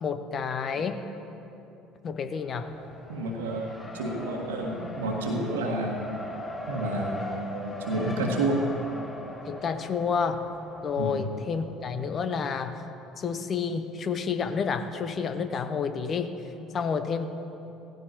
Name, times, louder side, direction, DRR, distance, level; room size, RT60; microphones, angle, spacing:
voice 1, 0.0-1.0 2.0-2.7 9.5-10.5 10.8-12.8 13.2-16.4 16.7-17.3, left 6 dB, 40° left, 9 dB, 0.8 m, -29 dB
Race car auto racing, 2.4-11.5, left 1 dB, 20° left, 1.7 m, -40 dB
voice 2, 3.1-6.1 6.7-8.6 11.0-11.2, right 1 dB, 75° right, 1 dB, 1.6 m, -30 dB
17.0 x 15.0 x 2.9 m, 2.9 s
figure-of-eight pair, 60°, 0 cm